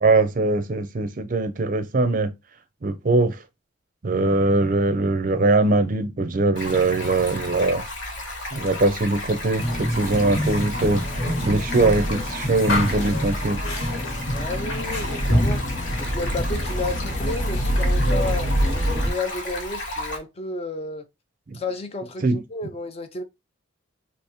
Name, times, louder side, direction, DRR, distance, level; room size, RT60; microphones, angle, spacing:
voice 1, 0.0-2.3 2.8-3.4 4.0-7.8 8.5-11.0 11.4-13.6 21.5-21.6 22.2-22.4, right 2 dB, 40° right, 0.5 m, -21 dB
Stream, 6.6-20.2, left 1 dB, 60° left, 1.0 m, -34 dB
sound 1, 9.6-19.1, equal, 80° left, 1.7 m, -25 dB
voice 2, 14.3-15.6 16.0-18.6 18.9-21.1 21.5-23.2, left 2 dB, 30° left, 0.4 m, -32 dB
3.4 x 2.9 x 2.9 m
head